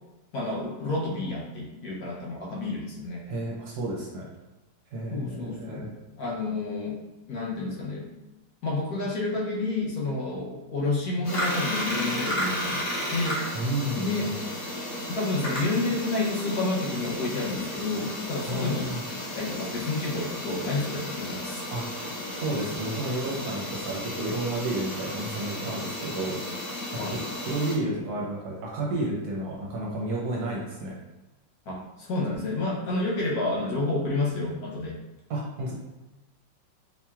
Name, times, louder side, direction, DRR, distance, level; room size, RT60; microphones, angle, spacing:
voice 1, 0.3-3.2 5.1-7.0 7.3-8.1 8.6-13.4 14.0-14.3 15.1-18.9 19.2-21.6 27.0-27.2 31.7-35.0, left 2 dB, 65° left, -4 dB, 1.0 m, -30 dB
voice 2, 3.3-4.2 4.9-5.9 13.5-14.3 18.4-19.0 21.7-21.9 22.4-26.4 27.1-30.9 35.3-35.7, right 1 dB, 65° right, -3 dB, 1.1 m, -31 dB
sound 1, 11.2-27.7, left 1 dB, 50° left, 1.3 m, -33 dB
4.4 x 2.9 x 2.3 m, 1.1 s
omnidirectional pair, 2.0 m